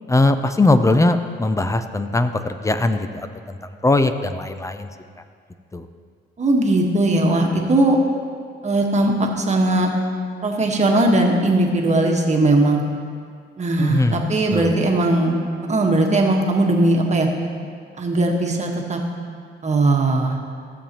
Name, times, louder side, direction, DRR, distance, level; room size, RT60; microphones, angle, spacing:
voice 1, 0.1-3.6 3.8-4.9 5.7-5.9 13.8-14.2 14.5-14.7, left 2 dB, 15° left, 9 dB, 0.5 m, -20 dB
voice 2, 6.4-8.0 8.6-9.9 10.4-12.8 13.6-15.4 15.7-17.3 18.0-19.0 19.6-20.4, right 2 dB, 35° right, 1 dB, 1.3 m, -19 dB
15.5 x 7.2 x 2.9 m, 2.1 s
cardioid pair, 90°, 20 cm